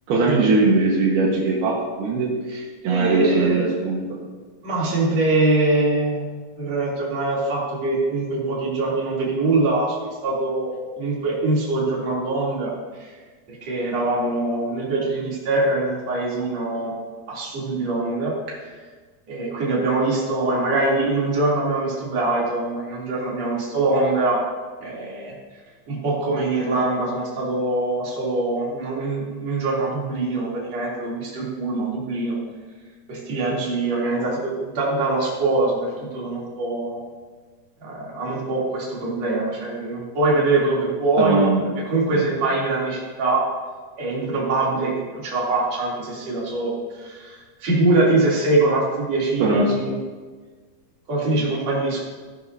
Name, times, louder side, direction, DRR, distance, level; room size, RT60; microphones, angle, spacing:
voice 1, 0.1-2.3 2.8-4.0 41.2-41.6 42.1-42.3 49.4-49.7, right 3 dB, 80° right, -4 dB, 3.5 m, -20 dB
voice 2, 2.5-3.8 4.6-6.3 6.6-10.7 11.0-13.2 13.6-16.9 17.3-18.3 19.3-24.4 24.8-25.4 25.9-32.4 33.1-37.0 37.8-41.5 41.9-43.5 44.0-44.9 45.2-50.0 51.1-52.0, right 2 dB, 45° right, -6 dB, 4.1 m, -23 dB
18.0 x 11.0 x 2.8 m, 1.4 s
omnidirectional pair, 4.5 m